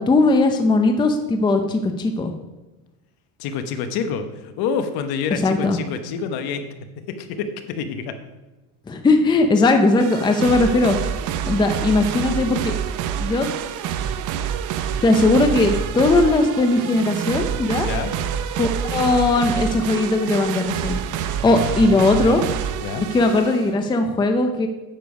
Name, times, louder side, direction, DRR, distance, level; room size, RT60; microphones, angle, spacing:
voice 1, 0.0-2.3 5.3-5.8 8.9-11.0 11.5-12.7 13.2-13.5 15.0-17.9 18.6-22.4 23.1-24.7, left 2 dB, 10° left, 6 dB, 0.6 m, -19 dB
voice 2, 3.4-6.7 7.1-8.2 17.8-18.1 21.4-22.4 22.8-23.1, left 6 dB, 60° left, 8 dB, 1.1 m, -28 dB
sound 1, 10.0-23.7, right 9 dB, 45° right, 0.7 m, -27 dB
9.2 x 6.7 x 5.2 m, 1.1 s
cardioid pair, 135°, 43 cm